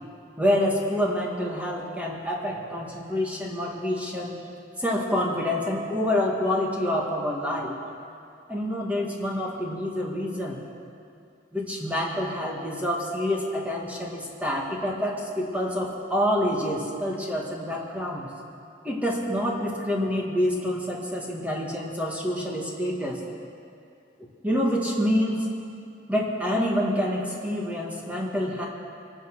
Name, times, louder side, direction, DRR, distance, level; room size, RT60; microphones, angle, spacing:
voice 1, 0.4-4.4 4.8-7.8 8.5-10.6 11.5-18.3 18.8-23.2 24.4-25.5 26.1-28.7, left 1 dB, 5° right, -2 dB, 2.0 m, -27 dB
23.5 x 9.5 x 6.2 m, 2.5 s
head